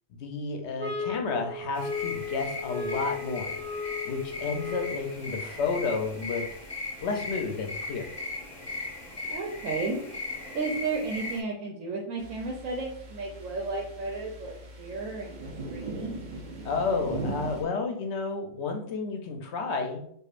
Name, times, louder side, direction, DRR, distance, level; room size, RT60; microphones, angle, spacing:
voice 1, 0.1-3.5 4.0-6.4 7.0-8.1 16.6-20.1, left 4 dB, 65° left, 4 dB, 0.9 m, -31 dB
sound 1, 0.8-5.2, left 5 dB, 10° right, 0.7 m, -35 dB
sound 2, 1.7-11.4, left 2 dB, 20° left, 1.0 m, -38 dB
voice 2, 9.2-10.0 10.5-15.4 15.7-16.2, right 3 dB, 85° right, 0 dB, 1.0 m, -33 dB
sound 3, 12.2-17.6, right 2 dB, 45° right, 0.6 m, -39 dB
4.8 x 2.4 x 2.4 m, 0.67 s
omnidirectional pair, 1.3 m